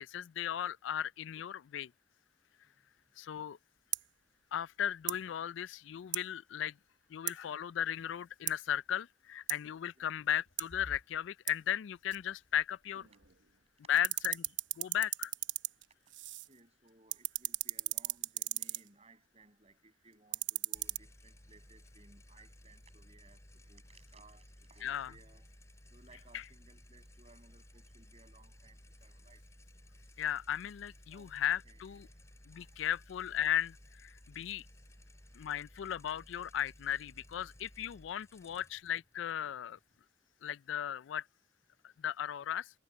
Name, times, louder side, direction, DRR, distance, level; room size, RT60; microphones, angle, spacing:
voice 1, 0.0-1.9 3.2-3.6 4.5-6.7 7.1-13.1 13.9-14.4 14.8-15.3 24.8-25.1 26.3-26.4 30.2-32.1 32.5-34.6 35.3-39.8 40.4-41.2 41.8-42.7, left 10 dB, 80° left, 0.3 m, -36 dB
sound 1, 2.5-2.6 3.0-3.2 3.5-5.2 6.0-6.4 6.7-7.0 7.8-8.7 10.1-13.7 14.0-15.0, left 1 dB, 60° left, 2.3 m, -59 dB
sound 2, 3.9-4.1 5.0-5.2 6.1-6.3 7.3-7.4 8.5-8.6 9.5-9.6 10.6-10.7 11.5-11.6 12.1-12.2 12.9-13.6 13.9-16.6 16.9-18.9 20.1-21.0, right 15 dB, 75° right, 1.0 m, -38 dB
voice 2, 16.5-25.5 25.9-29.4 31.1-31.4 31.6-32.2 32.5-32.7 34.3-35.6, right 3 dB, 35° right, 7.9 m, -63 dB
sound 3, 20.7-40.0, left 1 dB, 15° left, 4.6 m, -58 dB
head